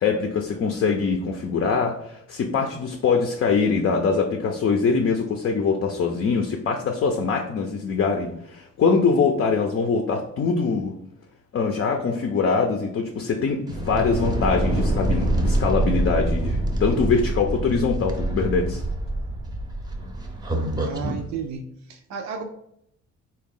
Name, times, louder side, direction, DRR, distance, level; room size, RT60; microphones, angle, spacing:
voice 1, 0.0-10.9 11.5-18.8, left 5 dB, 45° left, 3 dB, 0.5 m, -23 dB
sound 1, 13.7-21.2, right 1 dB, 15° right, 0.6 m, -25 dB
voice 2, 20.8-22.4, right 6 dB, 65° right, 4 dB, 0.5 m, -33 dB
3.8 x 2.3 x 3.7 m, 0.74 s
cardioid pair, 90°, 30 cm